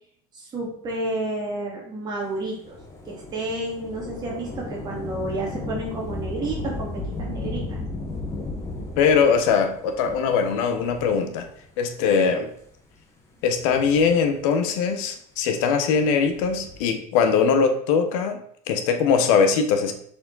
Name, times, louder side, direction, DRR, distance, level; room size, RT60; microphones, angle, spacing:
voice 1, 0.3-2.8 3.1-7.8, right 2 dB, 25° right, -3 dB, 2.3 m, -31 dB
Thunder / Rain, 2.6-11.6 12.4-12.5 13.4-14.7 16.2-16.9, left 2 dB, 15° left, 1.1 m, -35 dB
voice 2, 9.0-11.5 11.8-12.5 13.4-18.4 18.7-19.9, left 6 dB, 85° left, 6 dB, 1.1 m, -21 dB
6.9 x 5.2 x 4.0 m, 0.66 s
cardioid pair, 175°, 17 cm